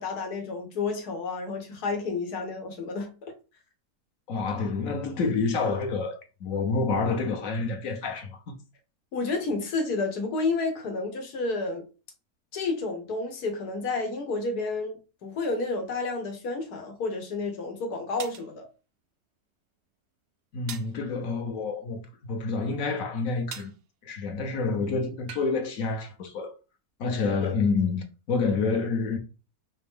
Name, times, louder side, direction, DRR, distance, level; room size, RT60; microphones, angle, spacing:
voice 1, 0.0-3.3 9.1-11.9 12.5-18.7 27.4-27.5, left 3 dB, 85° left, 1.7 m, -30 dB
voice 2, 4.3-8.5 20.5-23.7 24.0-26.5 27.0-29.2, left 4 dB, 65° left, 1.3 m, -28 dB
sound 1, 17.1-17.2 18.2-18.5 20.7-21.0 23.5-23.8 25.3-25.5, right 8 dB, 80° right, 0.5 m, -40 dB
5.2 x 2.9 x 3.6 m
omnidirectional pair, 1.6 m